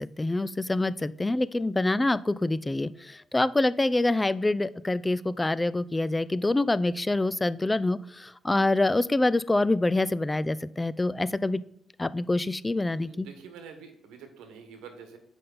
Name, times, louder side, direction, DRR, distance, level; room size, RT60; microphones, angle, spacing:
voice 1, 0.0-11.6 12.0-13.3, left 2 dB, 15° left, 17 dB, 0.3 m, -26 dB
voice 2, 12.9-15.2, right 6 dB, 90° right, 6 dB, 1.3 m, -47 dB
7.6 x 5.3 x 4.0 m, 0.76 s
cardioid pair, 90°, 0 cm